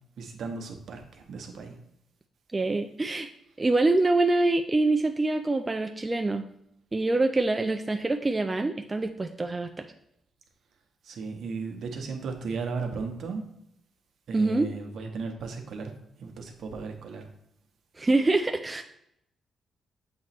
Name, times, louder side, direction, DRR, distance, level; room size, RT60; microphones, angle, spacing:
voice 1, 0.2-1.8 11.0-13.5 14.3-15.9 16.2-17.3, right 4 dB, 65° right, 4 dB, 0.9 m, -35 dB
voice 2, 2.5-3.3 3.6-6.5 6.9-9.8 14.3-14.7 18.0-18.8, right 2 dB, 20° right, 5 dB, 0.3 m, -25 dB
7.4 x 3.0 x 4.2 m, 0.77 s
cardioid pair, 130°, 0 cm